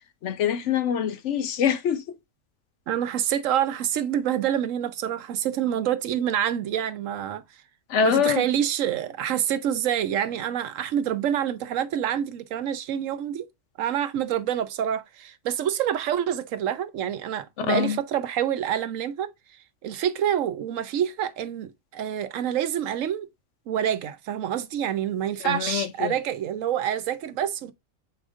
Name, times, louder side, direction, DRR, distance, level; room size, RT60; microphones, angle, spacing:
voice 1, 0.2-2.2 7.9-8.5 17.6-18.0 25.4-26.2, left 8 dB, 65° left, 0.9 m, -24 dB
voice 2, 2.9-7.4 8.0-13.5 13.8-19.3 19.8-23.3 23.7-27.7, right 10 dB, 75° right, 1.0 m, -27 dB
7.8 x 2.6 x 4.9 m
omnidirectional pair, 1.4 m